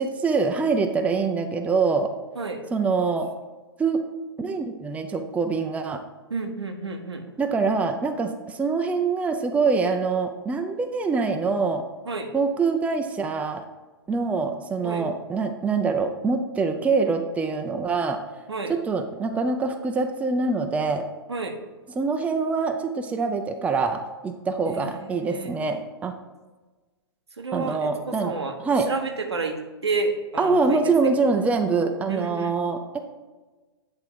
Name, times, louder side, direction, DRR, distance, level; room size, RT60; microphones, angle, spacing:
voice 1, 0.0-2.1 2.7-3.3 3.8-4.0 4.4-6.0 7.4-11.9 12.3-13.6 14.1-18.2 18.7-21.1 22.0-26.2 27.5-28.3 28.6-28.9 30.4-33.0, right 4 dB, 10° right, 5 dB, 0.5 m, -24 dB
voice 2, 6.3-7.2 12.1-12.3 14.8-15.0 18.5-18.7 21.3-21.6 24.7-25.5 27.4-30.8 32.1-32.5, right 3 dB, 85° right, 4 dB, 0.9 m, -30 dB
8.1 x 3.7 x 4.6 m, 1.2 s
figure-of-eight pair, 110°, 14 cm